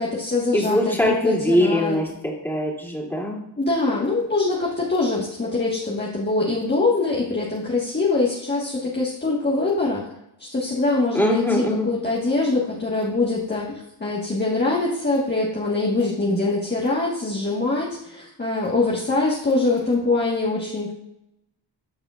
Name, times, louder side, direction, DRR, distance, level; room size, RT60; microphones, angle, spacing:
voice 1, 0.0-2.0 3.6-10.0 10.4-20.9, left 3 dB, 25° left, -5 dB, 1.5 m, -23 dB
voice 2, 0.5-3.4 11.1-11.9, left 1 dB, 5° left, -3 dB, 2.8 m, -22 dB
14.0 x 4.9 x 2.5 m, 0.82 s
cardioid pair, 75°, 42 cm